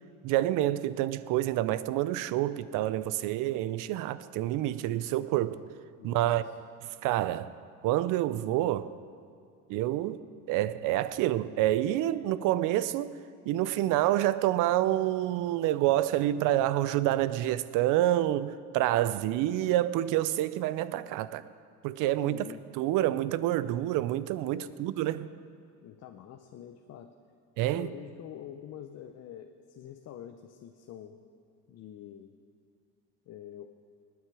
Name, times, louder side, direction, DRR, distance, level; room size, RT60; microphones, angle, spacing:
voice 1, 0.2-5.6 6.0-6.4 7.0-7.5 7.8-8.9 9.7-10.2 10.5-13.1 13.5-21.4 21.8-22.4 22.8-25.3 27.6-27.9, right 14 dB, 70° right, 0.6 m, -28 dB
voice 2, 6.0-6.6 22.2-22.6 24.5-24.8 25.8-27.1 27.7-31.2 31.7-32.3 33.3-33.7, left 10 dB, 50° left, 0.7 m, -46 dB
19.5 x 9.5 x 4.8 m
cardioid pair, 110°, 33 cm